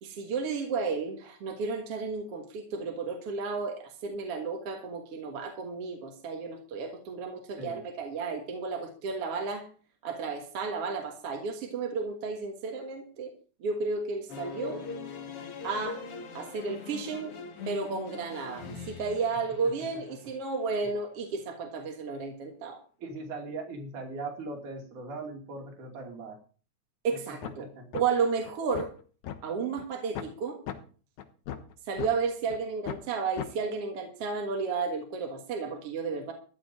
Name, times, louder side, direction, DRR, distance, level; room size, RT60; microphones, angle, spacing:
voice 1, 0.0-9.7 10.0-13.3 13.6-14.8 15.6-16.0 16.3-17.3 17.7-22.8 27.0-27.7 27.9-28.9 29.4-30.6 31.9-36.3, right 4 dB, 55° right, 3 dB, 2.4 m, -33 dB
sound 1, 14.3-20.2, left 4 dB, 50° left, 2.6 m, -41 dB
voice 2, 23.0-26.4 27.6-27.9, right 3 dB, 85° right, 2 dB, 4.1 m, -39 dB
sound 2, 27.4-27.6 27.9-28.0 28.4-29.4 29.8-29.9 30.2-30.3 30.7-30.8 31.2-32.1 32.5-32.6 32.9-33.0 33.4-33.5, left 10 dB, 75° left, 2.6 m, -36 dB
14.5 x 5.5 x 9.2 m, 0.40 s
omnidirectional pair, 3.4 m